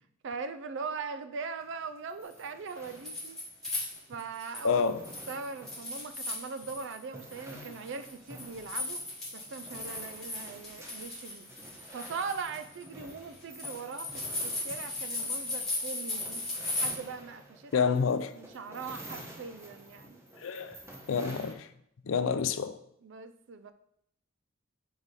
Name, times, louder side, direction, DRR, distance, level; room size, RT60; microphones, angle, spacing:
voice 1, 0.2-3.4 4.1-4.8 5.3-9.0 9.3-11.5 11.9-16.4 16.8-17.9 18.3-20.2 23.0-23.7, right 4 dB, 60° right, 0.4 m, -40 dB
sound 1, 1.6-21.5, right 1 dB, 15° right, 0.8 m, -50 dB
sound 2, 2.7-4.7 5.0-7.0 7.3-16.9, left 2 dB, ahead, 2.4 m, -37 dB
voice 2, 4.6-5.0 7.6-7.7 17.7-18.3 20.4-20.8 21.1-21.7 22.1-22.8, left 6 dB, 70° left, 0.4 m, -28 dB
4.8 x 4.8 x 4.1 m
head